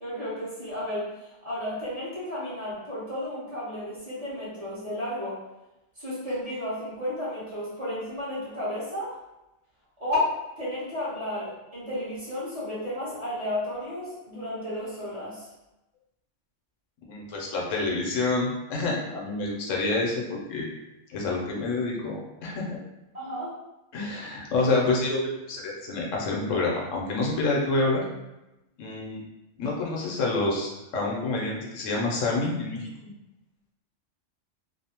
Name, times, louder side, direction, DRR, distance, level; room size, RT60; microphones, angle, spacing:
voice 1, 0.0-5.4 6.0-9.2 10.0-15.5 23.1-23.6, left 1 dB, 35° right, -10 dB, 0.9 m, -32 dB
voice 2, 17.1-20.7 21.1-22.8 23.9-28.0 28.8-29.2 29.6-32.9, left 3 dB, 85° left, -2 dB, 1.0 m, -28 dB
2.7 x 2.0 x 2.8 m, 0.95 s
omnidirectional pair, 1.3 m